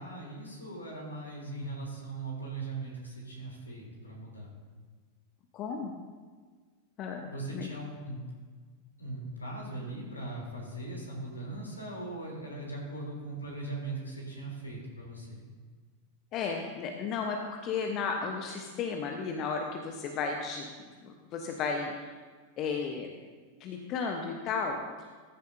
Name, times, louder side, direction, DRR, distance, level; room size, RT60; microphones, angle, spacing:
voice 1, 0.0-4.5 7.2-8.2 9.0-15.4, right 2 dB, 80° left, -2 dB, 3.6 m, -39 dB
voice 2, 5.5-6.0 7.0-7.3 7.5-7.7 16.3-22.1 22.6-23.1 23.6-24.8, left 5 dB, 35° left, 2 dB, 1.1 m, -34 dB
14.5 x 10.5 x 2.8 m, 1.5 s
figure-of-eight pair, 90°, 0 cm